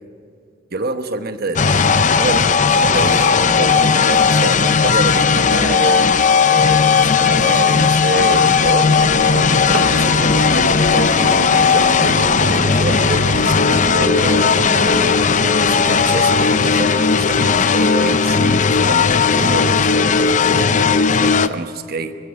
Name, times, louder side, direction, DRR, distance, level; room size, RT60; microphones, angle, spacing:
voice 1, 0.7-6.1 6.5-9.0 9.7-15.2 15.6-22.2, right 2 dB, 50° right, 9 dB, 1.1 m, -26 dB
sound 1, 1.6-21.5, left 5 dB, 40° left, 0.7 m, -15 dB
sound 2, 8.2-15.8, right 3 dB, 85° right, 0.8 m, -30 dB
23.5 x 16.0 x 9.1 m, 2.4 s
head